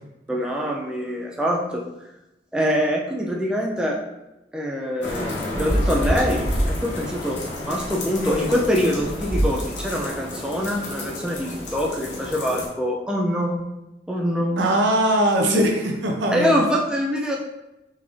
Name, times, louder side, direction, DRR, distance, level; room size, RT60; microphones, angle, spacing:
voice 1, 0.3-1.8 2.5-4.0 4.5-7.4 7.6-13.7 14.1-14.7 15.4-15.6 16.3-17.4, equal, 5° right, -2 dB, 0.3 m, -24 dB
sound 1, 5.0-12.7, equal, 85° left, 0.9 m, -28 dB
voice 2, 14.6-16.7, right 1 dB, 90° right, 2 dB, 0.6 m, -21 dB
3.7 x 2.5 x 3.0 m, 0.95 s
head